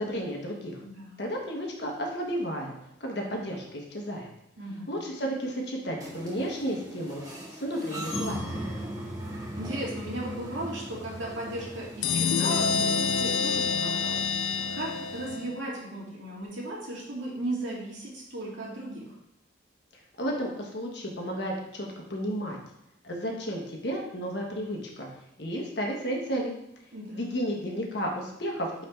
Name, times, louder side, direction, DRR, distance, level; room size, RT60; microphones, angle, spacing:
voice 1, 0.0-0.8 1.2-2.7 3.0-4.3 4.9-7.2 7.5-8.6 20.2-22.6 23.0-25.1 25.4-26.5 27.1-28.8, equal, 60° left, 0 dB, 1.3 m, -32 dB
voice 2, 0.8-1.3 4.6-4.9 9.5-14.2 14.7-19.1 26.9-27.3, right 1 dB, 75° right, -4 dB, 2.3 m, -36 dB
sound 1, 6.0-15.4, equal, 20° right, 1.7 m, -39 dB
sound 2, 12.0-15.6, left 5 dB, 80° left, 0.4 m, -27 dB
5.7 x 4.7 x 4.5 m, 0.81 s
head